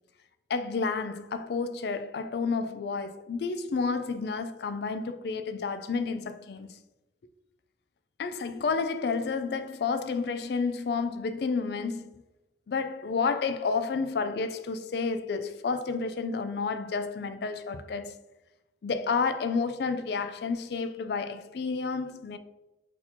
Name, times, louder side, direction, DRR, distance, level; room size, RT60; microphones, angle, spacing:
voice 1, 0.5-6.8 8.2-12.1 12.7-18.1 18.8-22.4, left 4 dB, 55° left, 0.3 m, -30 dB
4.1 x 2.8 x 4.3 m
head